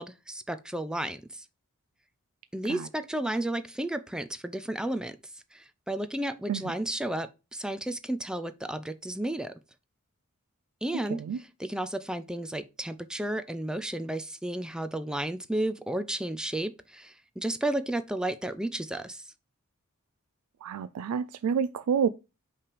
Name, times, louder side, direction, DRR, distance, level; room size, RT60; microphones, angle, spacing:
voice 1, 0.0-1.4 2.5-5.2 5.5-9.5 10.8-19.3, right 1 dB, 5° right, 0.4 m, -33 dB
voice 2, 20.6-22.1, right 7 dB, 80° right, 0.3 m, -28 dB
5.6 x 3.3 x 5.1 m
head